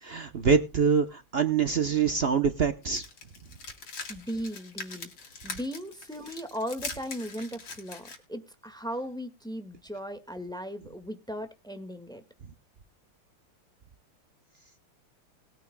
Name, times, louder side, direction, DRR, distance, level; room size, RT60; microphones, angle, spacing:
voice 1, 0.0-3.0, right 6 dB, 80° right, 8 dB, 0.5 m, -25 dB
sound 1, 2.8-8.2, left 4 dB, 65° left, 3.8 m, -42 dB
voice 2, 4.1-5.1 5.4-12.2, equal, ahead, 9 dB, 1.3 m, -37 dB
20.5 x 9.1 x 2.2 m, 0.27 s
omnidirectional pair, 2.4 m